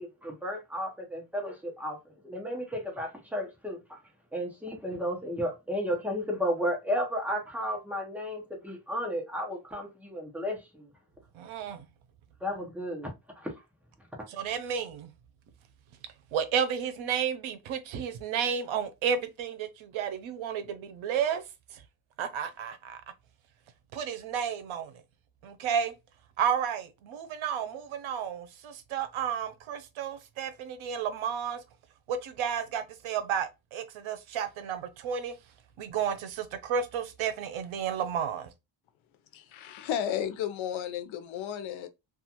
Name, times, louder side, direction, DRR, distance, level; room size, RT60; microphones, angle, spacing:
voice 1, 0.0-4.0 4.3-10.9 12.4-13.5, equal, 5° right, 0.7 m, -33 dB
voice 2, 11.3-11.9 14.3-15.1 16.3-21.4 21.7-21.8 22.2-23.0 23.9-24.9 25.4-25.9 26.4-31.6 32.1-35.3 35.8-38.5, right 7 dB, 85° right, 0.7 m, -32 dB
voice 3, 39.3-41.9, left 9 dB, 85° left, 0.6 m, -33 dB
2.4 x 2.3 x 2.8 m
wide cardioid pair, 155°, 46 cm